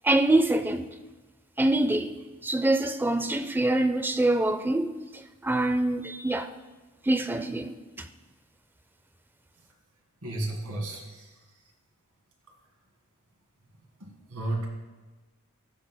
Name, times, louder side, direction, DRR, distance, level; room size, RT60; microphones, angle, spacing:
voice 1, 0.0-0.9 1.6-6.5 7.0-8.1, right 1 dB, 10° right, 0.4 m, -25 dB
voice 2, 10.2-11.3 14.0-14.7, right 1 dB, 85° right, 1.9 m, -33 dB
14.5 x 6.3 x 2.2 m
head